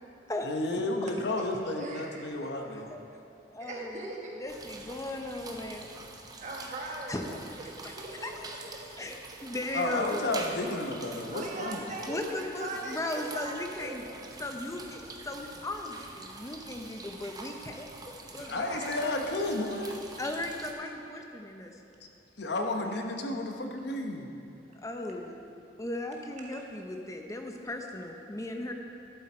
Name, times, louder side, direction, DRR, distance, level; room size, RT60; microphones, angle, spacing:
voice 1, 0.4-2.9 9.7-11.9 18.4-20.0 22.4-24.3, left 2 dB, 65° left, 3 dB, 0.9 m, -32 dB
voice 2, 1.4-2.4 3.6-4.5 6.4-7.3 7.6-8.6 11.3-14.2 18.3-19.0 26.4-26.6, right 2 dB, 40° right, -1 dB, 1.4 m, -40 dB
voice 3, 2.4-3.0 3.5-3.9 4.4-5.9 7.1-7.2 8.2-8.3 9.0-10.3 12.1-14.0 14.4-18.8 20.2-21.8 24.8-25.3 25.8-28.7, left 1 dB, 20° left, 3 dB, 0.7 m, -37 dB
sound 1, 4.5-20.7, right 3 dB, 20° right, 0.7 m, -46 dB
11.5 x 7.8 x 4.4 m, 2.7 s
head